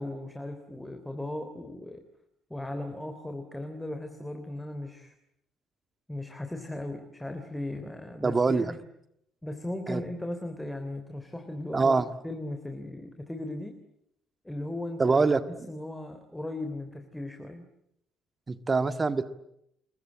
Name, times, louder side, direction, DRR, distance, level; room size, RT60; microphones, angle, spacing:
voice 1, 0.0-2.0 2.5-5.1 6.1-8.8 9.4-11.9 12.2-13.8 14.4-15.2 15.7-17.7, left 1 dB, 5° left, 7 dB, 3.3 m, -37 dB
voice 2, 8.2-8.7 9.9-10.0 11.7-12.1 15.0-15.7 18.5-19.2, right 4 dB, 25° right, 10 dB, 1.8 m, -24 dB
28.5 x 22.0 x 8.8 m, 0.78 s
figure-of-eight pair, 50°, 0 cm